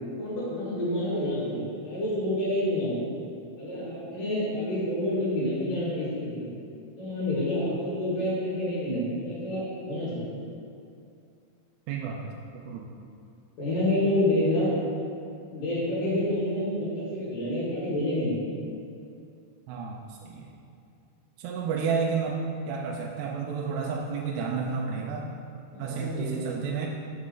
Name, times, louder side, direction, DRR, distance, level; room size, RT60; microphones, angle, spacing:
voice 1, 0.2-3.0 3.6-6.5 7.0-10.3 13.6-14.7 15.5-18.4 25.7-26.4, left 1 dB, 55° left, -9 dB, 3.0 m, -28 dB
voice 2, 11.9-12.9 19.7-20.5 21.4-25.3 25.8-26.9, right 5 dB, 80° right, -1 dB, 2.5 m, -31 dB
7.3 x 6.1 x 3.8 m, 2.5 s
omnidirectional pair, 4.9 m